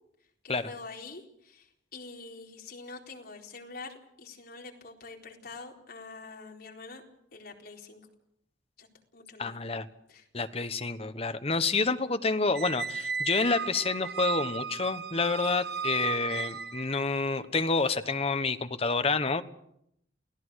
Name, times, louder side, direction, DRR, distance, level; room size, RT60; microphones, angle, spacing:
voice 1, 0.4-7.0 7.3-8.0 8.8-8.9 9.1-9.5 10.1-10.2, left 3 dB, 55° left, 0 dB, 4.2 m, -45 dB
voice 2, 9.4-9.9 10.3-19.4, left 4 dB, 35° left, 9 dB, 1.2 m, -28 dB
Squeak, 12.5-17.0, right 6 dB, 60° right, 1.3 m, -34 dB
28.5 x 17.0 x 6.5 m, 0.75 s
head